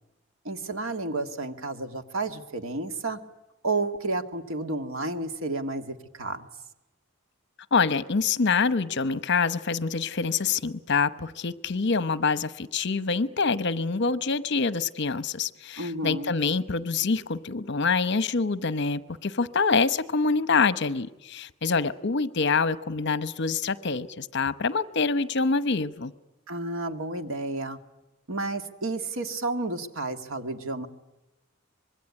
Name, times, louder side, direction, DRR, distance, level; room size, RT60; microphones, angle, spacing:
voice 1, 0.5-3.2 3.6-6.5 15.8-16.3 26.5-27.8 28.3-30.9, right 2 dB, 75° right, 7 dB, 2.0 m, -31 dB
voice 2, 7.7-26.1, left 4 dB, 55° left, 14 dB, 1.0 m, -26 dB
25.0 x 21.5 x 9.7 m, 0.97 s
head